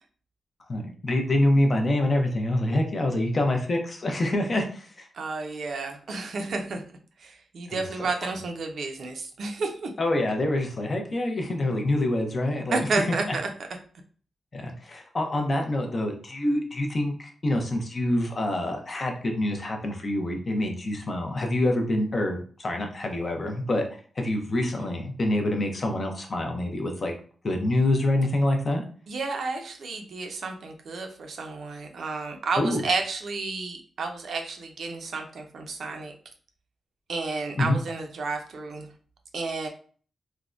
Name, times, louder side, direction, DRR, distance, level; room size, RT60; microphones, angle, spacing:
voice 1, 0.7-5.1 7.7-7.9 10.0-13.4 14.5-23.8 24.2-27.1 27.4-28.8 32.6-32.8 37.6-37.8, left 1 dB, 35° left, 3 dB, 0.5 m, -26 dB
voice 2, 5.1-9.9 12.7-13.5 24.8-25.0 29.1-36.1 37.1-38.9 39.3-39.7, right 3 dB, 60° right, 4 dB, 0.5 m, -31 dB
3.4 x 2.1 x 2.4 m, 0.43 s
wide cardioid pair, 135°, 0 cm